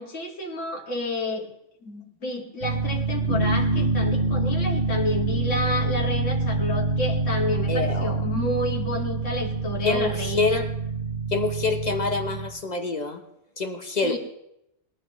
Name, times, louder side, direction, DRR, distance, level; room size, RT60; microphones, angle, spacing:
voice 1, 0.0-1.5 1.8-10.6 14.0-14.2, left 1 dB, 90° left, -1 dB, 2.4 m, -30 dB
sound 1, 2.6-12.5, right 3 dB, 65° right, 4.9 m, -26 dB
voice 2, 7.7-8.2 9.8-10.7 11.3-13.2 13.6-14.2, left 3 dB, 40° left, 5 dB, 1.0 m, -26 dB
21.5 x 12.5 x 3.1 m, 0.82 s
omnidirectional pair, 1.2 m